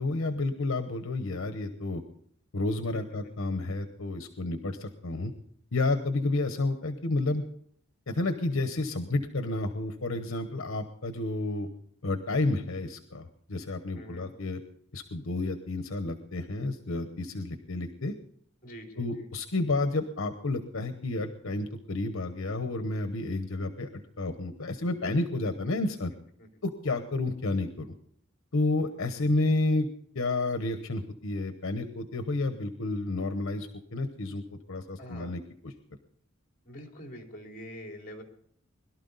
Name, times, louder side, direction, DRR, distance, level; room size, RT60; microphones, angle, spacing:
voice 1, 0.0-2.0 2.5-5.3 5.7-7.4 8.1-11.7 12.0-14.6 14.9-18.1 19.0-23.9 24.2-26.1 26.6-27.9 28.5-29.9 30.1-34.4 34.7-35.7, left 2 dB, 75° left, 9 dB, 1.0 m, -30 dB
voice 2, 13.9-14.3 18.6-19.3 26.4-26.5 35.0-35.3 36.6-38.2, equal, 40° left, 2 dB, 3.1 m, -45 dB
21.5 x 12.0 x 4.0 m, 0.65 s
head